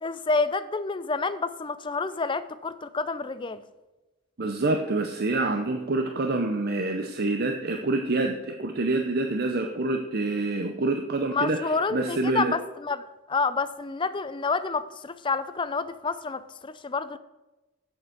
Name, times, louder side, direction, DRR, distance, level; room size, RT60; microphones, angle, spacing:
voice 1, 0.0-3.6 11.3-17.2, left 4 dB, 20° left, 14 dB, 0.4 m, -29 dB
voice 2, 4.4-12.5, right 2 dB, 45° right, 5 dB, 0.7 m, -27 dB
7.9 x 7.8 x 7.9 m, 1.1 s
head